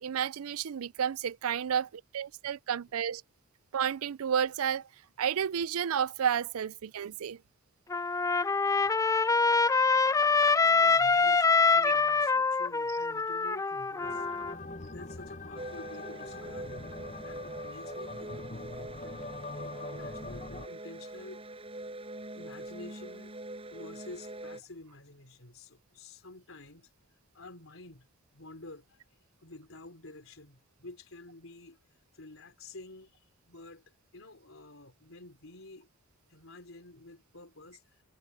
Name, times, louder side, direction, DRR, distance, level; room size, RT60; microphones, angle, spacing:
voice 1, 0.0-3.2 3.7-4.9 5.2-7.4 11.8-11.9, right 8 dB, 75° right, 0.4 m, -31 dB
Trumpet, 7.9-14.5, left 4 dB, 15° left, 0.3 m, -25 dB
voice 2, 10.5-14.3 14.8-16.9 17.2-19.3 19.6-21.6 22.3-23.4 23.7-26.9 27.3-28.1 28.3-31.8 32.1-33.8 34.1-35.9 36.3-38.0, left 2 dB, 65° left, 4.4 m, -50 dB
sound 1, 14.0-20.7, left 2 dB, 30° left, 0.9 m, -43 dB
sound 2, 15.6-24.6, right 1 dB, 25° right, 7.1 m, -43 dB
head